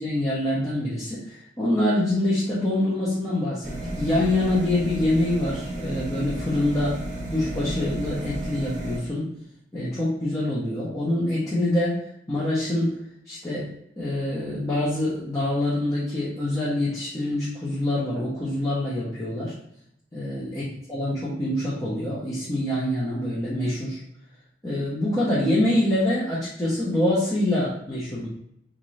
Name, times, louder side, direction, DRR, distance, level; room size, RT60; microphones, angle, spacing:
voice 1, 0.0-6.9 7.3-9.3 9.7-12.0 12.3-13.0 13.3-13.7 14.0-19.5 20.1-24.0 24.6-28.3, left 1 dB, 20° left, -8 dB, 0.8 m, -25 dB
sound 1, 3.6-9.0, right 1 dB, 45° right, 0.7 m, -32 dB
3.6 x 2.6 x 3.1 m, 0.76 s
head